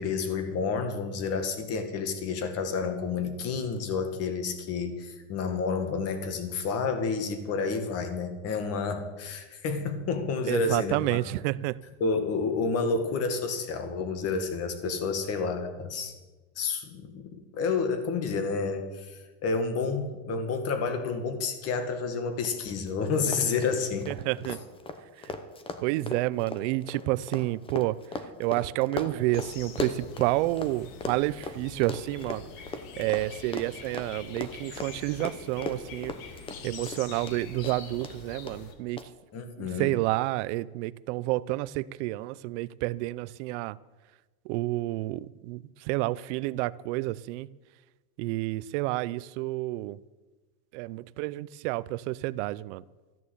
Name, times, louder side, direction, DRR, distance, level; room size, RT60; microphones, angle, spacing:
voice 1, 0.0-11.2 12.0-16.1 16.6-24.1 39.3-40.0, left 4 dB, 35° left, 8 dB, 1.9 m, -30 dB
voice 2, 10.5-11.8 24.1-24.6 25.8-28.0 28.4-32.4 33.0-36.1 36.6-39.0 39.6-43.8 44.5-45.6 45.9-47.5 48.2-50.0 50.7-52.8, right 18 dB, 50° right, 18 dB, 0.5 m, -29 dB
Run, 22.4-22.5 22.8-22.9 23.2-30.7 31.0-37.4 37.6-38.1 38.5-38.6 39.0-39.1, left 3 dB, 10° left, 0.8 m, -37 dB
sound 1, 29.3-38.7, left 6 dB, 60° left, 2.2 m, -45 dB
14.0 x 9.9 x 8.0 m, 1.2 s
supercardioid pair, 155°, 44 cm